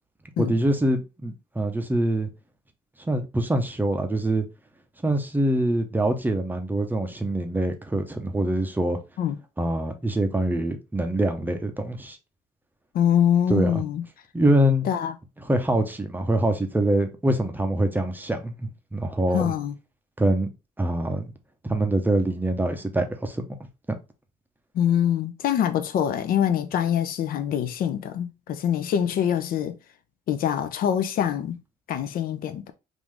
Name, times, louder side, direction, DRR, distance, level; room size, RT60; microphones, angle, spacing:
voice 1, 0.4-2.3 3.1-4.4 5.0-9.0 9.6-12.2 13.5-13.7 14.3-14.9 15.4-19.5 20.2-20.5 20.8-21.3 21.7-23.4, right 1 dB, 10° right, 0.6 m, -24 dB
voice 2, 12.9-14.0 14.8-15.1 19.3-19.7 24.7-29.8 30.3-31.6 31.9-32.7, left 9 dB, 60° left, 0.5 m, -24 dB
3.7 x 2.5 x 3.1 m
cardioid pair, 110°, 17 cm